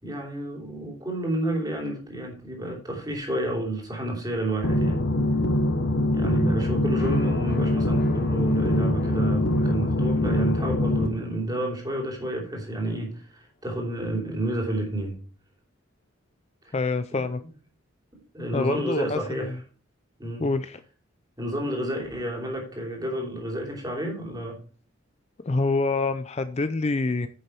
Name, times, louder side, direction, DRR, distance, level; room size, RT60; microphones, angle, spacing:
voice 1, 0.0-5.1 6.1-15.2 16.6-16.7 17.1-17.2 18.1-19.6 20.2-20.5 21.4-24.6, right 1 dB, 20° right, 3.0 m, -30 dB
sound 1, 4.6-11.1, left 1 dB, 60° left, 0.9 m, -23 dB
sound 2, 6.9-12.9, left 4 dB, 45° left, 1.5 m, -43 dB
voice 2, 16.7-17.4 18.5-19.6 20.4-20.8 25.4-27.3, left 3 dB, 30° left, 0.4 m, -26 dB
9.7 x 6.5 x 4.4 m
head